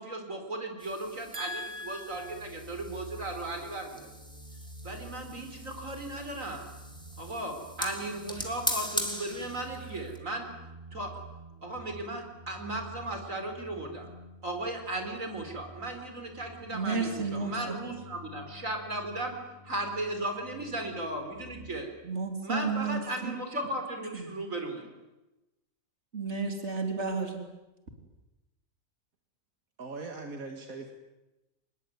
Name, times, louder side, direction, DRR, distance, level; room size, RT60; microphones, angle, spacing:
voice 1, 0.0-4.1 4.8-6.7 7.2-10.5 10.9-11.1 11.6-14.1 14.4-19.3 19.6-21.9 22.4-24.9, right 1 dB, 70° right, 5 dB, 4.8 m, -36 dB
sound 1, 0.8-10.2, equal, 5° left, 3.3 m, -40 dB
voice 2, 1.3-2.4 16.7-17.8 22.0-23.3 24.1-24.3 26.1-27.4, right 4 dB, 55° right, 4 dB, 3.8 m, -33 dB
sound 2, 2.1-21.7, right 1 dB, 30° right, 3.6 m, -49 dB
voice 3, 29.8-30.9, right 3 dB, 85° right, 4 dB, 2.3 m, -40 dB
26.0 x 20.5 x 9.7 m, 1.0 s
omnidirectional pair, 1.4 m